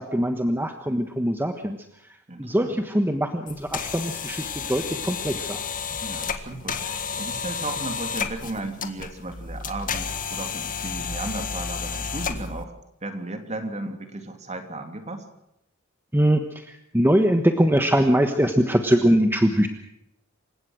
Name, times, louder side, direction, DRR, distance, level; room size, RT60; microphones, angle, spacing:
voice 1, 0.0-5.6 16.1-19.7, equal, 10° right, 6 dB, 1.3 m, -22 dB
voice 2, 2.3-2.8 6.0-12.7 13.0-15.2, right 2 dB, 30° right, 6 dB, 3.1 m, -35 dB
sound 1, 3.5-12.6, left 6 dB, 40° left, 1.8 m, -31 dB
28.0 x 16.5 x 6.4 m, 0.80 s
head